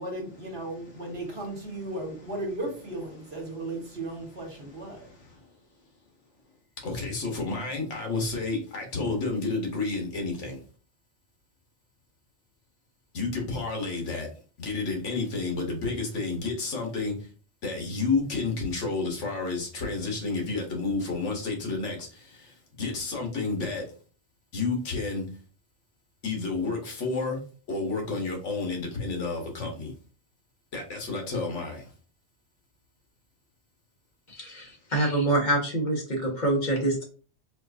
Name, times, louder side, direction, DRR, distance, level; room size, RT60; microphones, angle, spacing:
voice 1, 0.0-5.1, right 2 dB, 60° right, 1.3 m, -35 dB
voice 2, 4.9-5.5 6.8-10.6 13.1-14.3 14.6-17.3 17.6-23.9 24.5-25.3 26.2-27.4 27.7-29.9 30.7-31.9, left 3 dB, 80° left, 1.3 m, -30 dB
voice 3, 34.3-37.0, right 1 dB, 40° left, 1.1 m, -26 dB
4.3 x 2.3 x 2.5 m
omnidirectional pair, 1.2 m